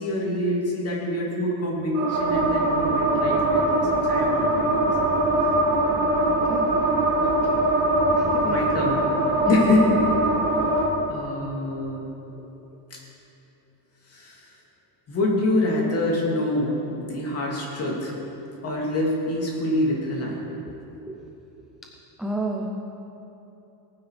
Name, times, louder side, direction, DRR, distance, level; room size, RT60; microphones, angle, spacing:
voice 1, 0.0-4.9 5.4-5.5 7.2-7.3 8.5-9.1 9.5-10.0 11.1-12.0 14.1-14.5 15.1-18.1 18.6-20.4, left 1 dB, 30° left, -3 dB, 2.9 m, -26 dB
sound 1, 1.9-10.9, right 2 dB, 35° right, 2.0 m, -22 dB
voice 2, 6.3-6.7 8.1-8.9 9.4-9.5 12.4-12.5 21.0-21.2 22.2-22.7, right 2 dB, ahead, -1 dB, 0.3 m, -32 dB
18.0 x 9.6 x 5.0 m, 3.0 s
cardioid pair, 170°, 48 cm